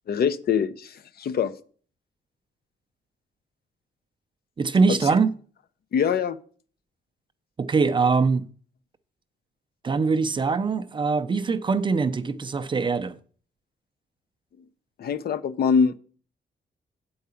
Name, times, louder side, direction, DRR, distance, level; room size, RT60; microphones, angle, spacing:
voice 1, 0.1-1.5 5.9-6.4 15.0-16.0, left 6 dB, 55° left, 0.6 m, -23 dB
voice 2, 4.6-5.3 7.6-8.4 9.8-13.2, right 4 dB, 25° right, 0.4 m, -22 dB
8.5 x 4.7 x 6.9 m
wide cardioid pair, 170°, 18 cm